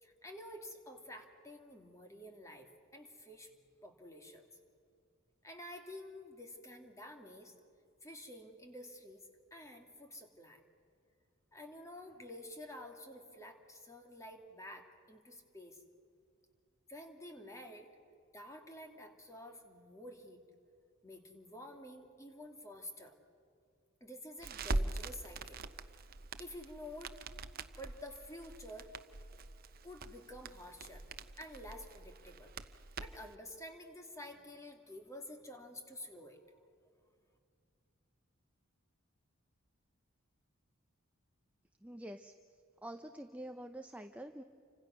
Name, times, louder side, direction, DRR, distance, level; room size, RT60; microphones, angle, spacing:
voice 1, 0.0-3.5 3.8-4.5 5.4-7.5 8.0-10.6 11.5-15.8 16.9-17.9 18.3-20.4 21.0-23.1 24.0-25.6 26.4-27.2 27.8-28.9 29.8-31.1 31.4-32.5 33.0-36.6, left 1 dB, 15° left, 3 dB, 2.5 m, -50 dB
Crackle, 24.4-33.3, right 2 dB, 45° right, 0.9 m, -43 dB
voice 2, 41.8-42.3 42.8-44.4, right 1 dB, 5° right, 6 dB, 0.7 m, -46 dB
29.5 x 25.5 x 6.4 m, 2.3 s
head